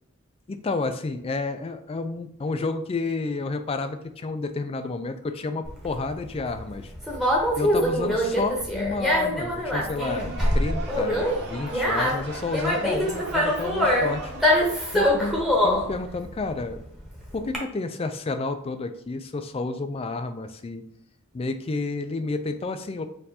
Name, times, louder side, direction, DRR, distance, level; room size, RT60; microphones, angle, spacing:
voice 1, 0.5-6.9 7.6-14.3 14.9-15.3 15.6-16.8 17.3-20.8 21.3-23.1, left 3 dB, 25° left, 8 dB, 0.3 m, -30 dB
Conversation, 5.6-17.6, equal, ahead, 0.9 m, -24 dB
sound 1, 10.0-15.8, right 3 dB, 50° right, 0.8 m, -39 dB
4.3 x 2.6 x 4.1 m, 0.76 s
head